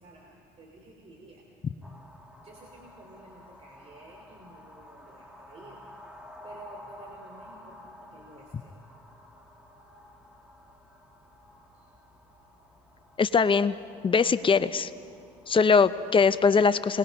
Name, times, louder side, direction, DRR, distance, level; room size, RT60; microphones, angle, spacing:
voice 1, 0.0-1.5 2.4-5.9 6.4-8.8 11.7-11.9, right 2 dB, 35° right, -1 dB, 2.9 m, -51 dB
sound 1, 1.8-16.4, left 1 dB, 5° right, 1.8 m, -52 dB
voice 2, 13.2-13.8 14.0-14.9 15.5-17.0, left 5 dB, 25° left, 13 dB, 0.6 m, -21 dB
28.5 x 21.0 x 5.4 m, 2.4 s
cardioid pair, 120°, 19 cm